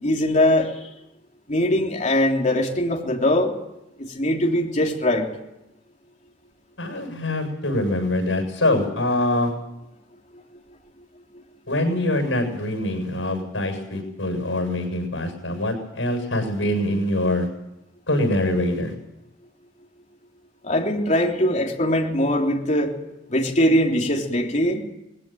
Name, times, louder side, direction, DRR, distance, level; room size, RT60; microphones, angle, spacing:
voice 1, 0.0-0.9 1.5-3.6 4.0-5.3 20.6-22.9 23.3-24.8, left 1 dB, 40° left, 1 dB, 3.3 m, -21 dB
voice 2, 6.8-9.5 11.7-17.5 18.1-18.9, left 1 dB, 90° left, 4 dB, 7.2 m, -24 dB
20.5 x 16.5 x 9.3 m, 0.92 s
head